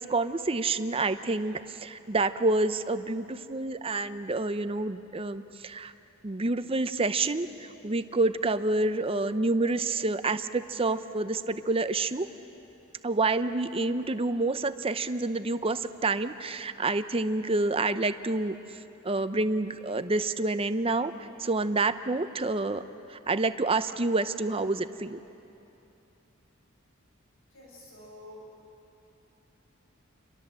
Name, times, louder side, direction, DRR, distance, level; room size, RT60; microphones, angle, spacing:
voice 1, 0.0-5.9 6.2-7.5 7.8-12.3 13.0-18.6 19.0-21.1 21.4-22.8 23.3-25.2, right 2 dB, 25° right, 11 dB, 0.7 m, -28 dB
voice 2, 27.5-28.5, left 1 dB, 80° left, -4 dB, 7.7 m, -48 dB
29.0 x 22.5 x 7.6 m, 3.0 s
head